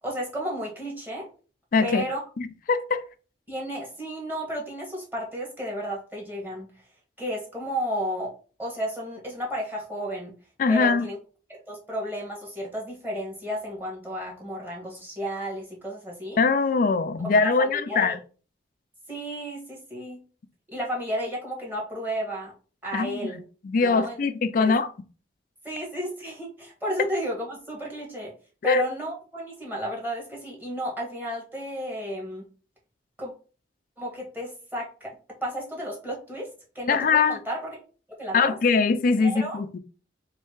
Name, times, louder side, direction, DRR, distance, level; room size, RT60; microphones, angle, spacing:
voice 1, 0.0-1.3 1.8-2.2 3.5-6.7 7.2-8.3 8.6-10.3 10.7-11.2 11.5-16.4 17.2-18.2 19.1-20.2 20.7-22.5 22.8-23.4 23.8-24.2 24.6-24.7 25.6-28.3 28.6-32.5 33.2-33.3 34.0-35.1 35.4-37.8 38.2-38.5 39.2-39.6, equal, 10° right, 1.5 m, -33 dB
voice 2, 1.7-2.0 2.4-3.0 10.6-11.0 16.4-18.1 22.9-23.3 23.6-24.9 28.6-28.9 36.9-37.4 38.3-39.8, left 4 dB, 50° left, 0.4 m, -22 dB
3.2 x 2.7 x 4.5 m
head